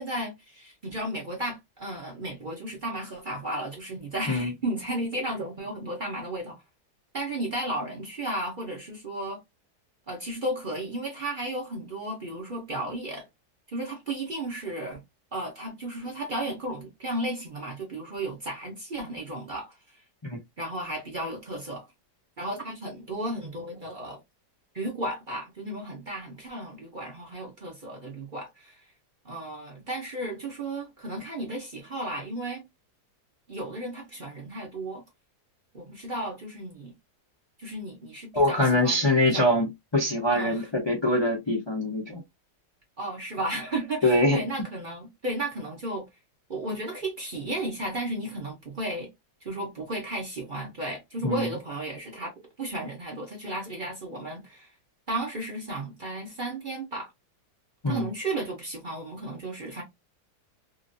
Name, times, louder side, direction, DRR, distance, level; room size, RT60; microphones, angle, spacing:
voice 1, 0.0-6.6 7.1-9.4 10.1-13.3 13.7-15.0 15.3-20.0 20.6-21.9 22.4-24.2 24.7-28.9 29.2-32.7 33.5-35.0 35.7-36.9 37.6-39.6 40.3-40.7 43.0-46.1 46.5-49.1 49.4-52.3 52.6-54.7 55.1-57.1 57.9-59.8, right 1 dB, 40° right, 0.8 m, -34 dB
voice 2, 38.3-42.2 44.0-44.4 51.2-51.5 57.8-58.1, left 1 dB, 40° left, 0.4 m, -24 dB
2.9 x 2.5 x 2.6 m
omnidirectional pair, 1.8 m